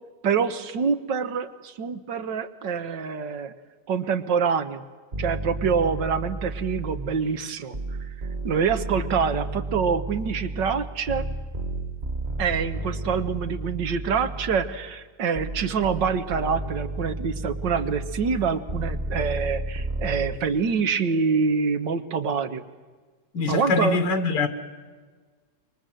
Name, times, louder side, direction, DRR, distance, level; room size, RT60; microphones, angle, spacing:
voice 1, 0.2-3.5 3.9-4.8 5.2-7.8 8.0-8.1 8.4-11.2 12.4-22.6 23.5-24.0, right 6 dB, 85° right, 1.9 m, -26 dB
sound 1, 5.1-7.3 7.7-14.9 15.4-20.4, right 2 dB, 30° right, 1.3 m, -32 dB
voice 2, 23.3-24.5, left 4 dB, 75° left, 2.2 m, -23 dB
26.5 x 23.5 x 7.8 m
omnidirectional pair, 1.9 m